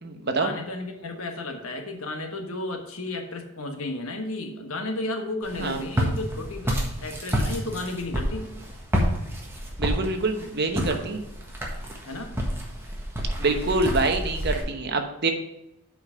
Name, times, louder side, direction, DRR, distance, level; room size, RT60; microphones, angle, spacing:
voice 1, 0.2-8.5 12.1-12.3, left 2 dB, 70° left, 5 dB, 1.3 m, -33 dB
Walk footsteps, 5.4-14.6, equal, 10° right, 1.5 m, -29 dB
voice 2, 9.8-11.2 13.4-15.3, right 3 dB, 45° right, 5 dB, 1.0 m, -25 dB
8.2 x 5.1 x 5.5 m, 0.87 s
head